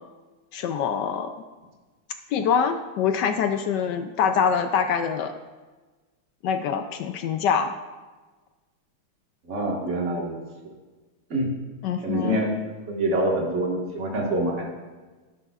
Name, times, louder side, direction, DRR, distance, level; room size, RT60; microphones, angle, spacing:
voice 1, 0.5-1.3 2.3-5.3 6.4-7.7 11.8-12.4, left 7 dB, 75° left, 7 dB, 1.0 m, -24 dB
voice 2, 9.5-10.4 11.3-11.5 12.0-12.5 12.9-14.7, right 1 dB, 35° right, -2 dB, 1.8 m, -25 dB
12.0 x 11.0 x 2.4 m, 1.3 s
omnidirectional pair, 2.3 m